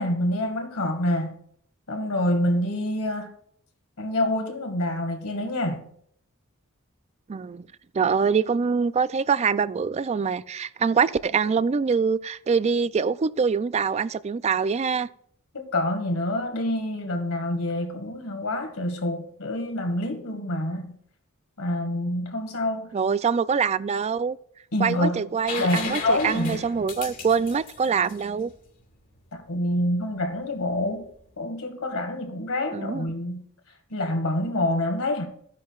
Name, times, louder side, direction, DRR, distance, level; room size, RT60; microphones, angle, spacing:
voice 1, 0.0-1.4 1.9-3.3 4.0-5.9 15.7-20.9 21.6-22.9 24.7-25.2 25.6-26.6 29.3-31.1 31.4-33.4 33.9-35.3, left 1 dB, 85° left, 1.9 m, -27 dB
voice 2, 7.3-7.7 7.9-15.1 22.9-24.4 24.8-28.5 32.7-33.1, right 5 dB, 30° right, 0.3 m, -24 dB
sound 1, 25.5-29.2 31.0-31.1, left 4 dB, 45° left, 1.9 m, -36 dB
14.0 x 10.5 x 2.4 m
head